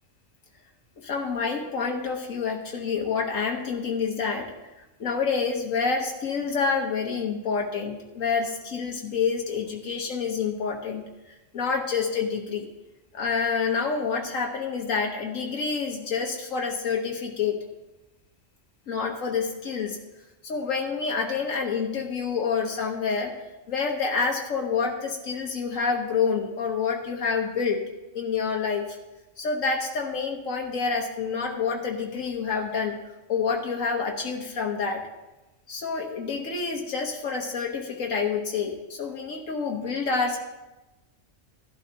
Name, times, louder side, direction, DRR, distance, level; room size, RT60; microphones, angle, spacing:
voice 1, 1.0-4.5 5.0-11.0 11.5-12.7 13.1-17.6 18.9-20.0 20.4-23.3 23.7-27.8 28.1-29.0 29.4-33.0 33.3-35.0 35.7-40.4, left 5 dB, 80° left, 1 dB, 1.5 m, -28 dB
15.5 x 12.0 x 2.8 m, 1.0 s
omnidirectional pair, 1.4 m